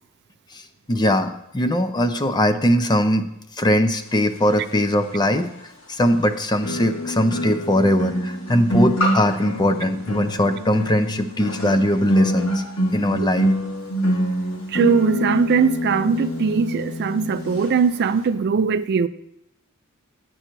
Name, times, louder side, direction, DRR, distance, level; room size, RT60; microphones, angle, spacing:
voice 1, 0.9-3.3 3.6-5.5 5.9-12.6 12.9-13.5, equal, 20° left, 0.6 m, -20 dB
sound 1, 5.2-5.3 6.6-17.7 18.0-18.3, equal, 65° left, 1.9 m, -26 dB
voice 2, 14.7-19.1, right 5 dB, 50° right, 0.4 m, -20 dB
10.0 x 7.7 x 4.6 m
head